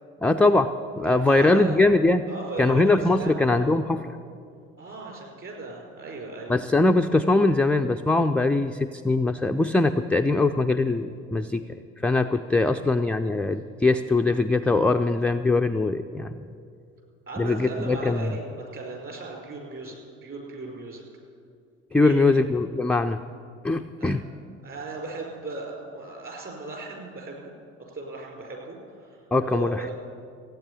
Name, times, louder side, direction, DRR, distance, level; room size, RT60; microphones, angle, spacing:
voice 1, 0.2-2.2 2.6-4.1 6.5-11.6 12.0-16.4 17.4-18.3 21.9-23.2 23.6-24.2 29.3-29.9, left 2 dB, 5° left, 5 dB, 0.3 m, -22 dB
voice 2, 1.1-1.9 2.3-3.7 4.8-6.5 12.6-12.9 17.3-20.0 20.2-21.0 22.0-22.6 24.0-24.3 24.6-27.5 27.8-29.9, right 2 dB, 35° right, 0 dB, 5.0 m, -37 dB
15.0 x 9.2 x 9.5 m, 2.4 s
figure-of-eight pair, 65°, 36 cm